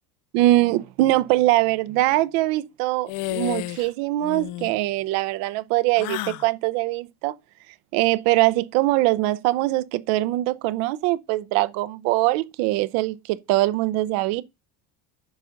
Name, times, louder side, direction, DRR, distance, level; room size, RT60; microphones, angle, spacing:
voice 1, 0.3-7.3 7.9-14.4, right 17 dB, 70° right, 0.8 m, -22 dB
sound 1, 3.1-3.9 4.2-4.7 6.0-6.5, left 17 dB, 60° left, 0.6 m, -31 dB
9.8 x 4.0 x 5.8 m
cardioid pair, 170°, 37 cm